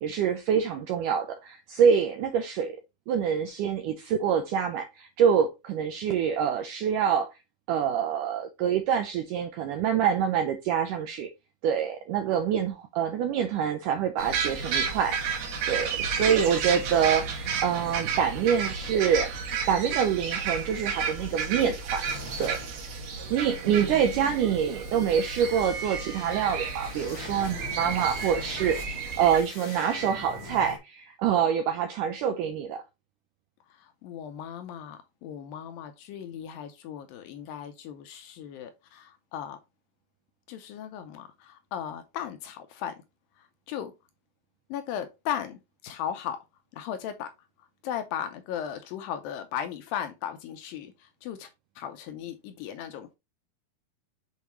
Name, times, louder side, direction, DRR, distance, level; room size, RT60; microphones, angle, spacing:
voice 1, 0.0-2.8 3.1-7.3 7.7-11.3 11.6-15.2 15.7-22.1 22.4-22.6 23.3-32.8, right 8 dB, 90° right, 1.8 m, -26 dB
sound 1, 14.2-29.4, right 6 dB, 65° right, 2.9 m, -32 dB
sound 2, 22.0-30.8, equal, 40° left, 1.3 m, -43 dB
voice 2, 23.7-24.4 27.6-27.9 33.8-39.6 40.5-42.9 43.4-43.9 44.7-46.4 46.7-47.3 47.8-51.5 51.8-53.2, left 9 dB, 80° left, 2.2 m, -37 dB
7.0 x 4.5 x 3.0 m
omnidirectional pair, 4.5 m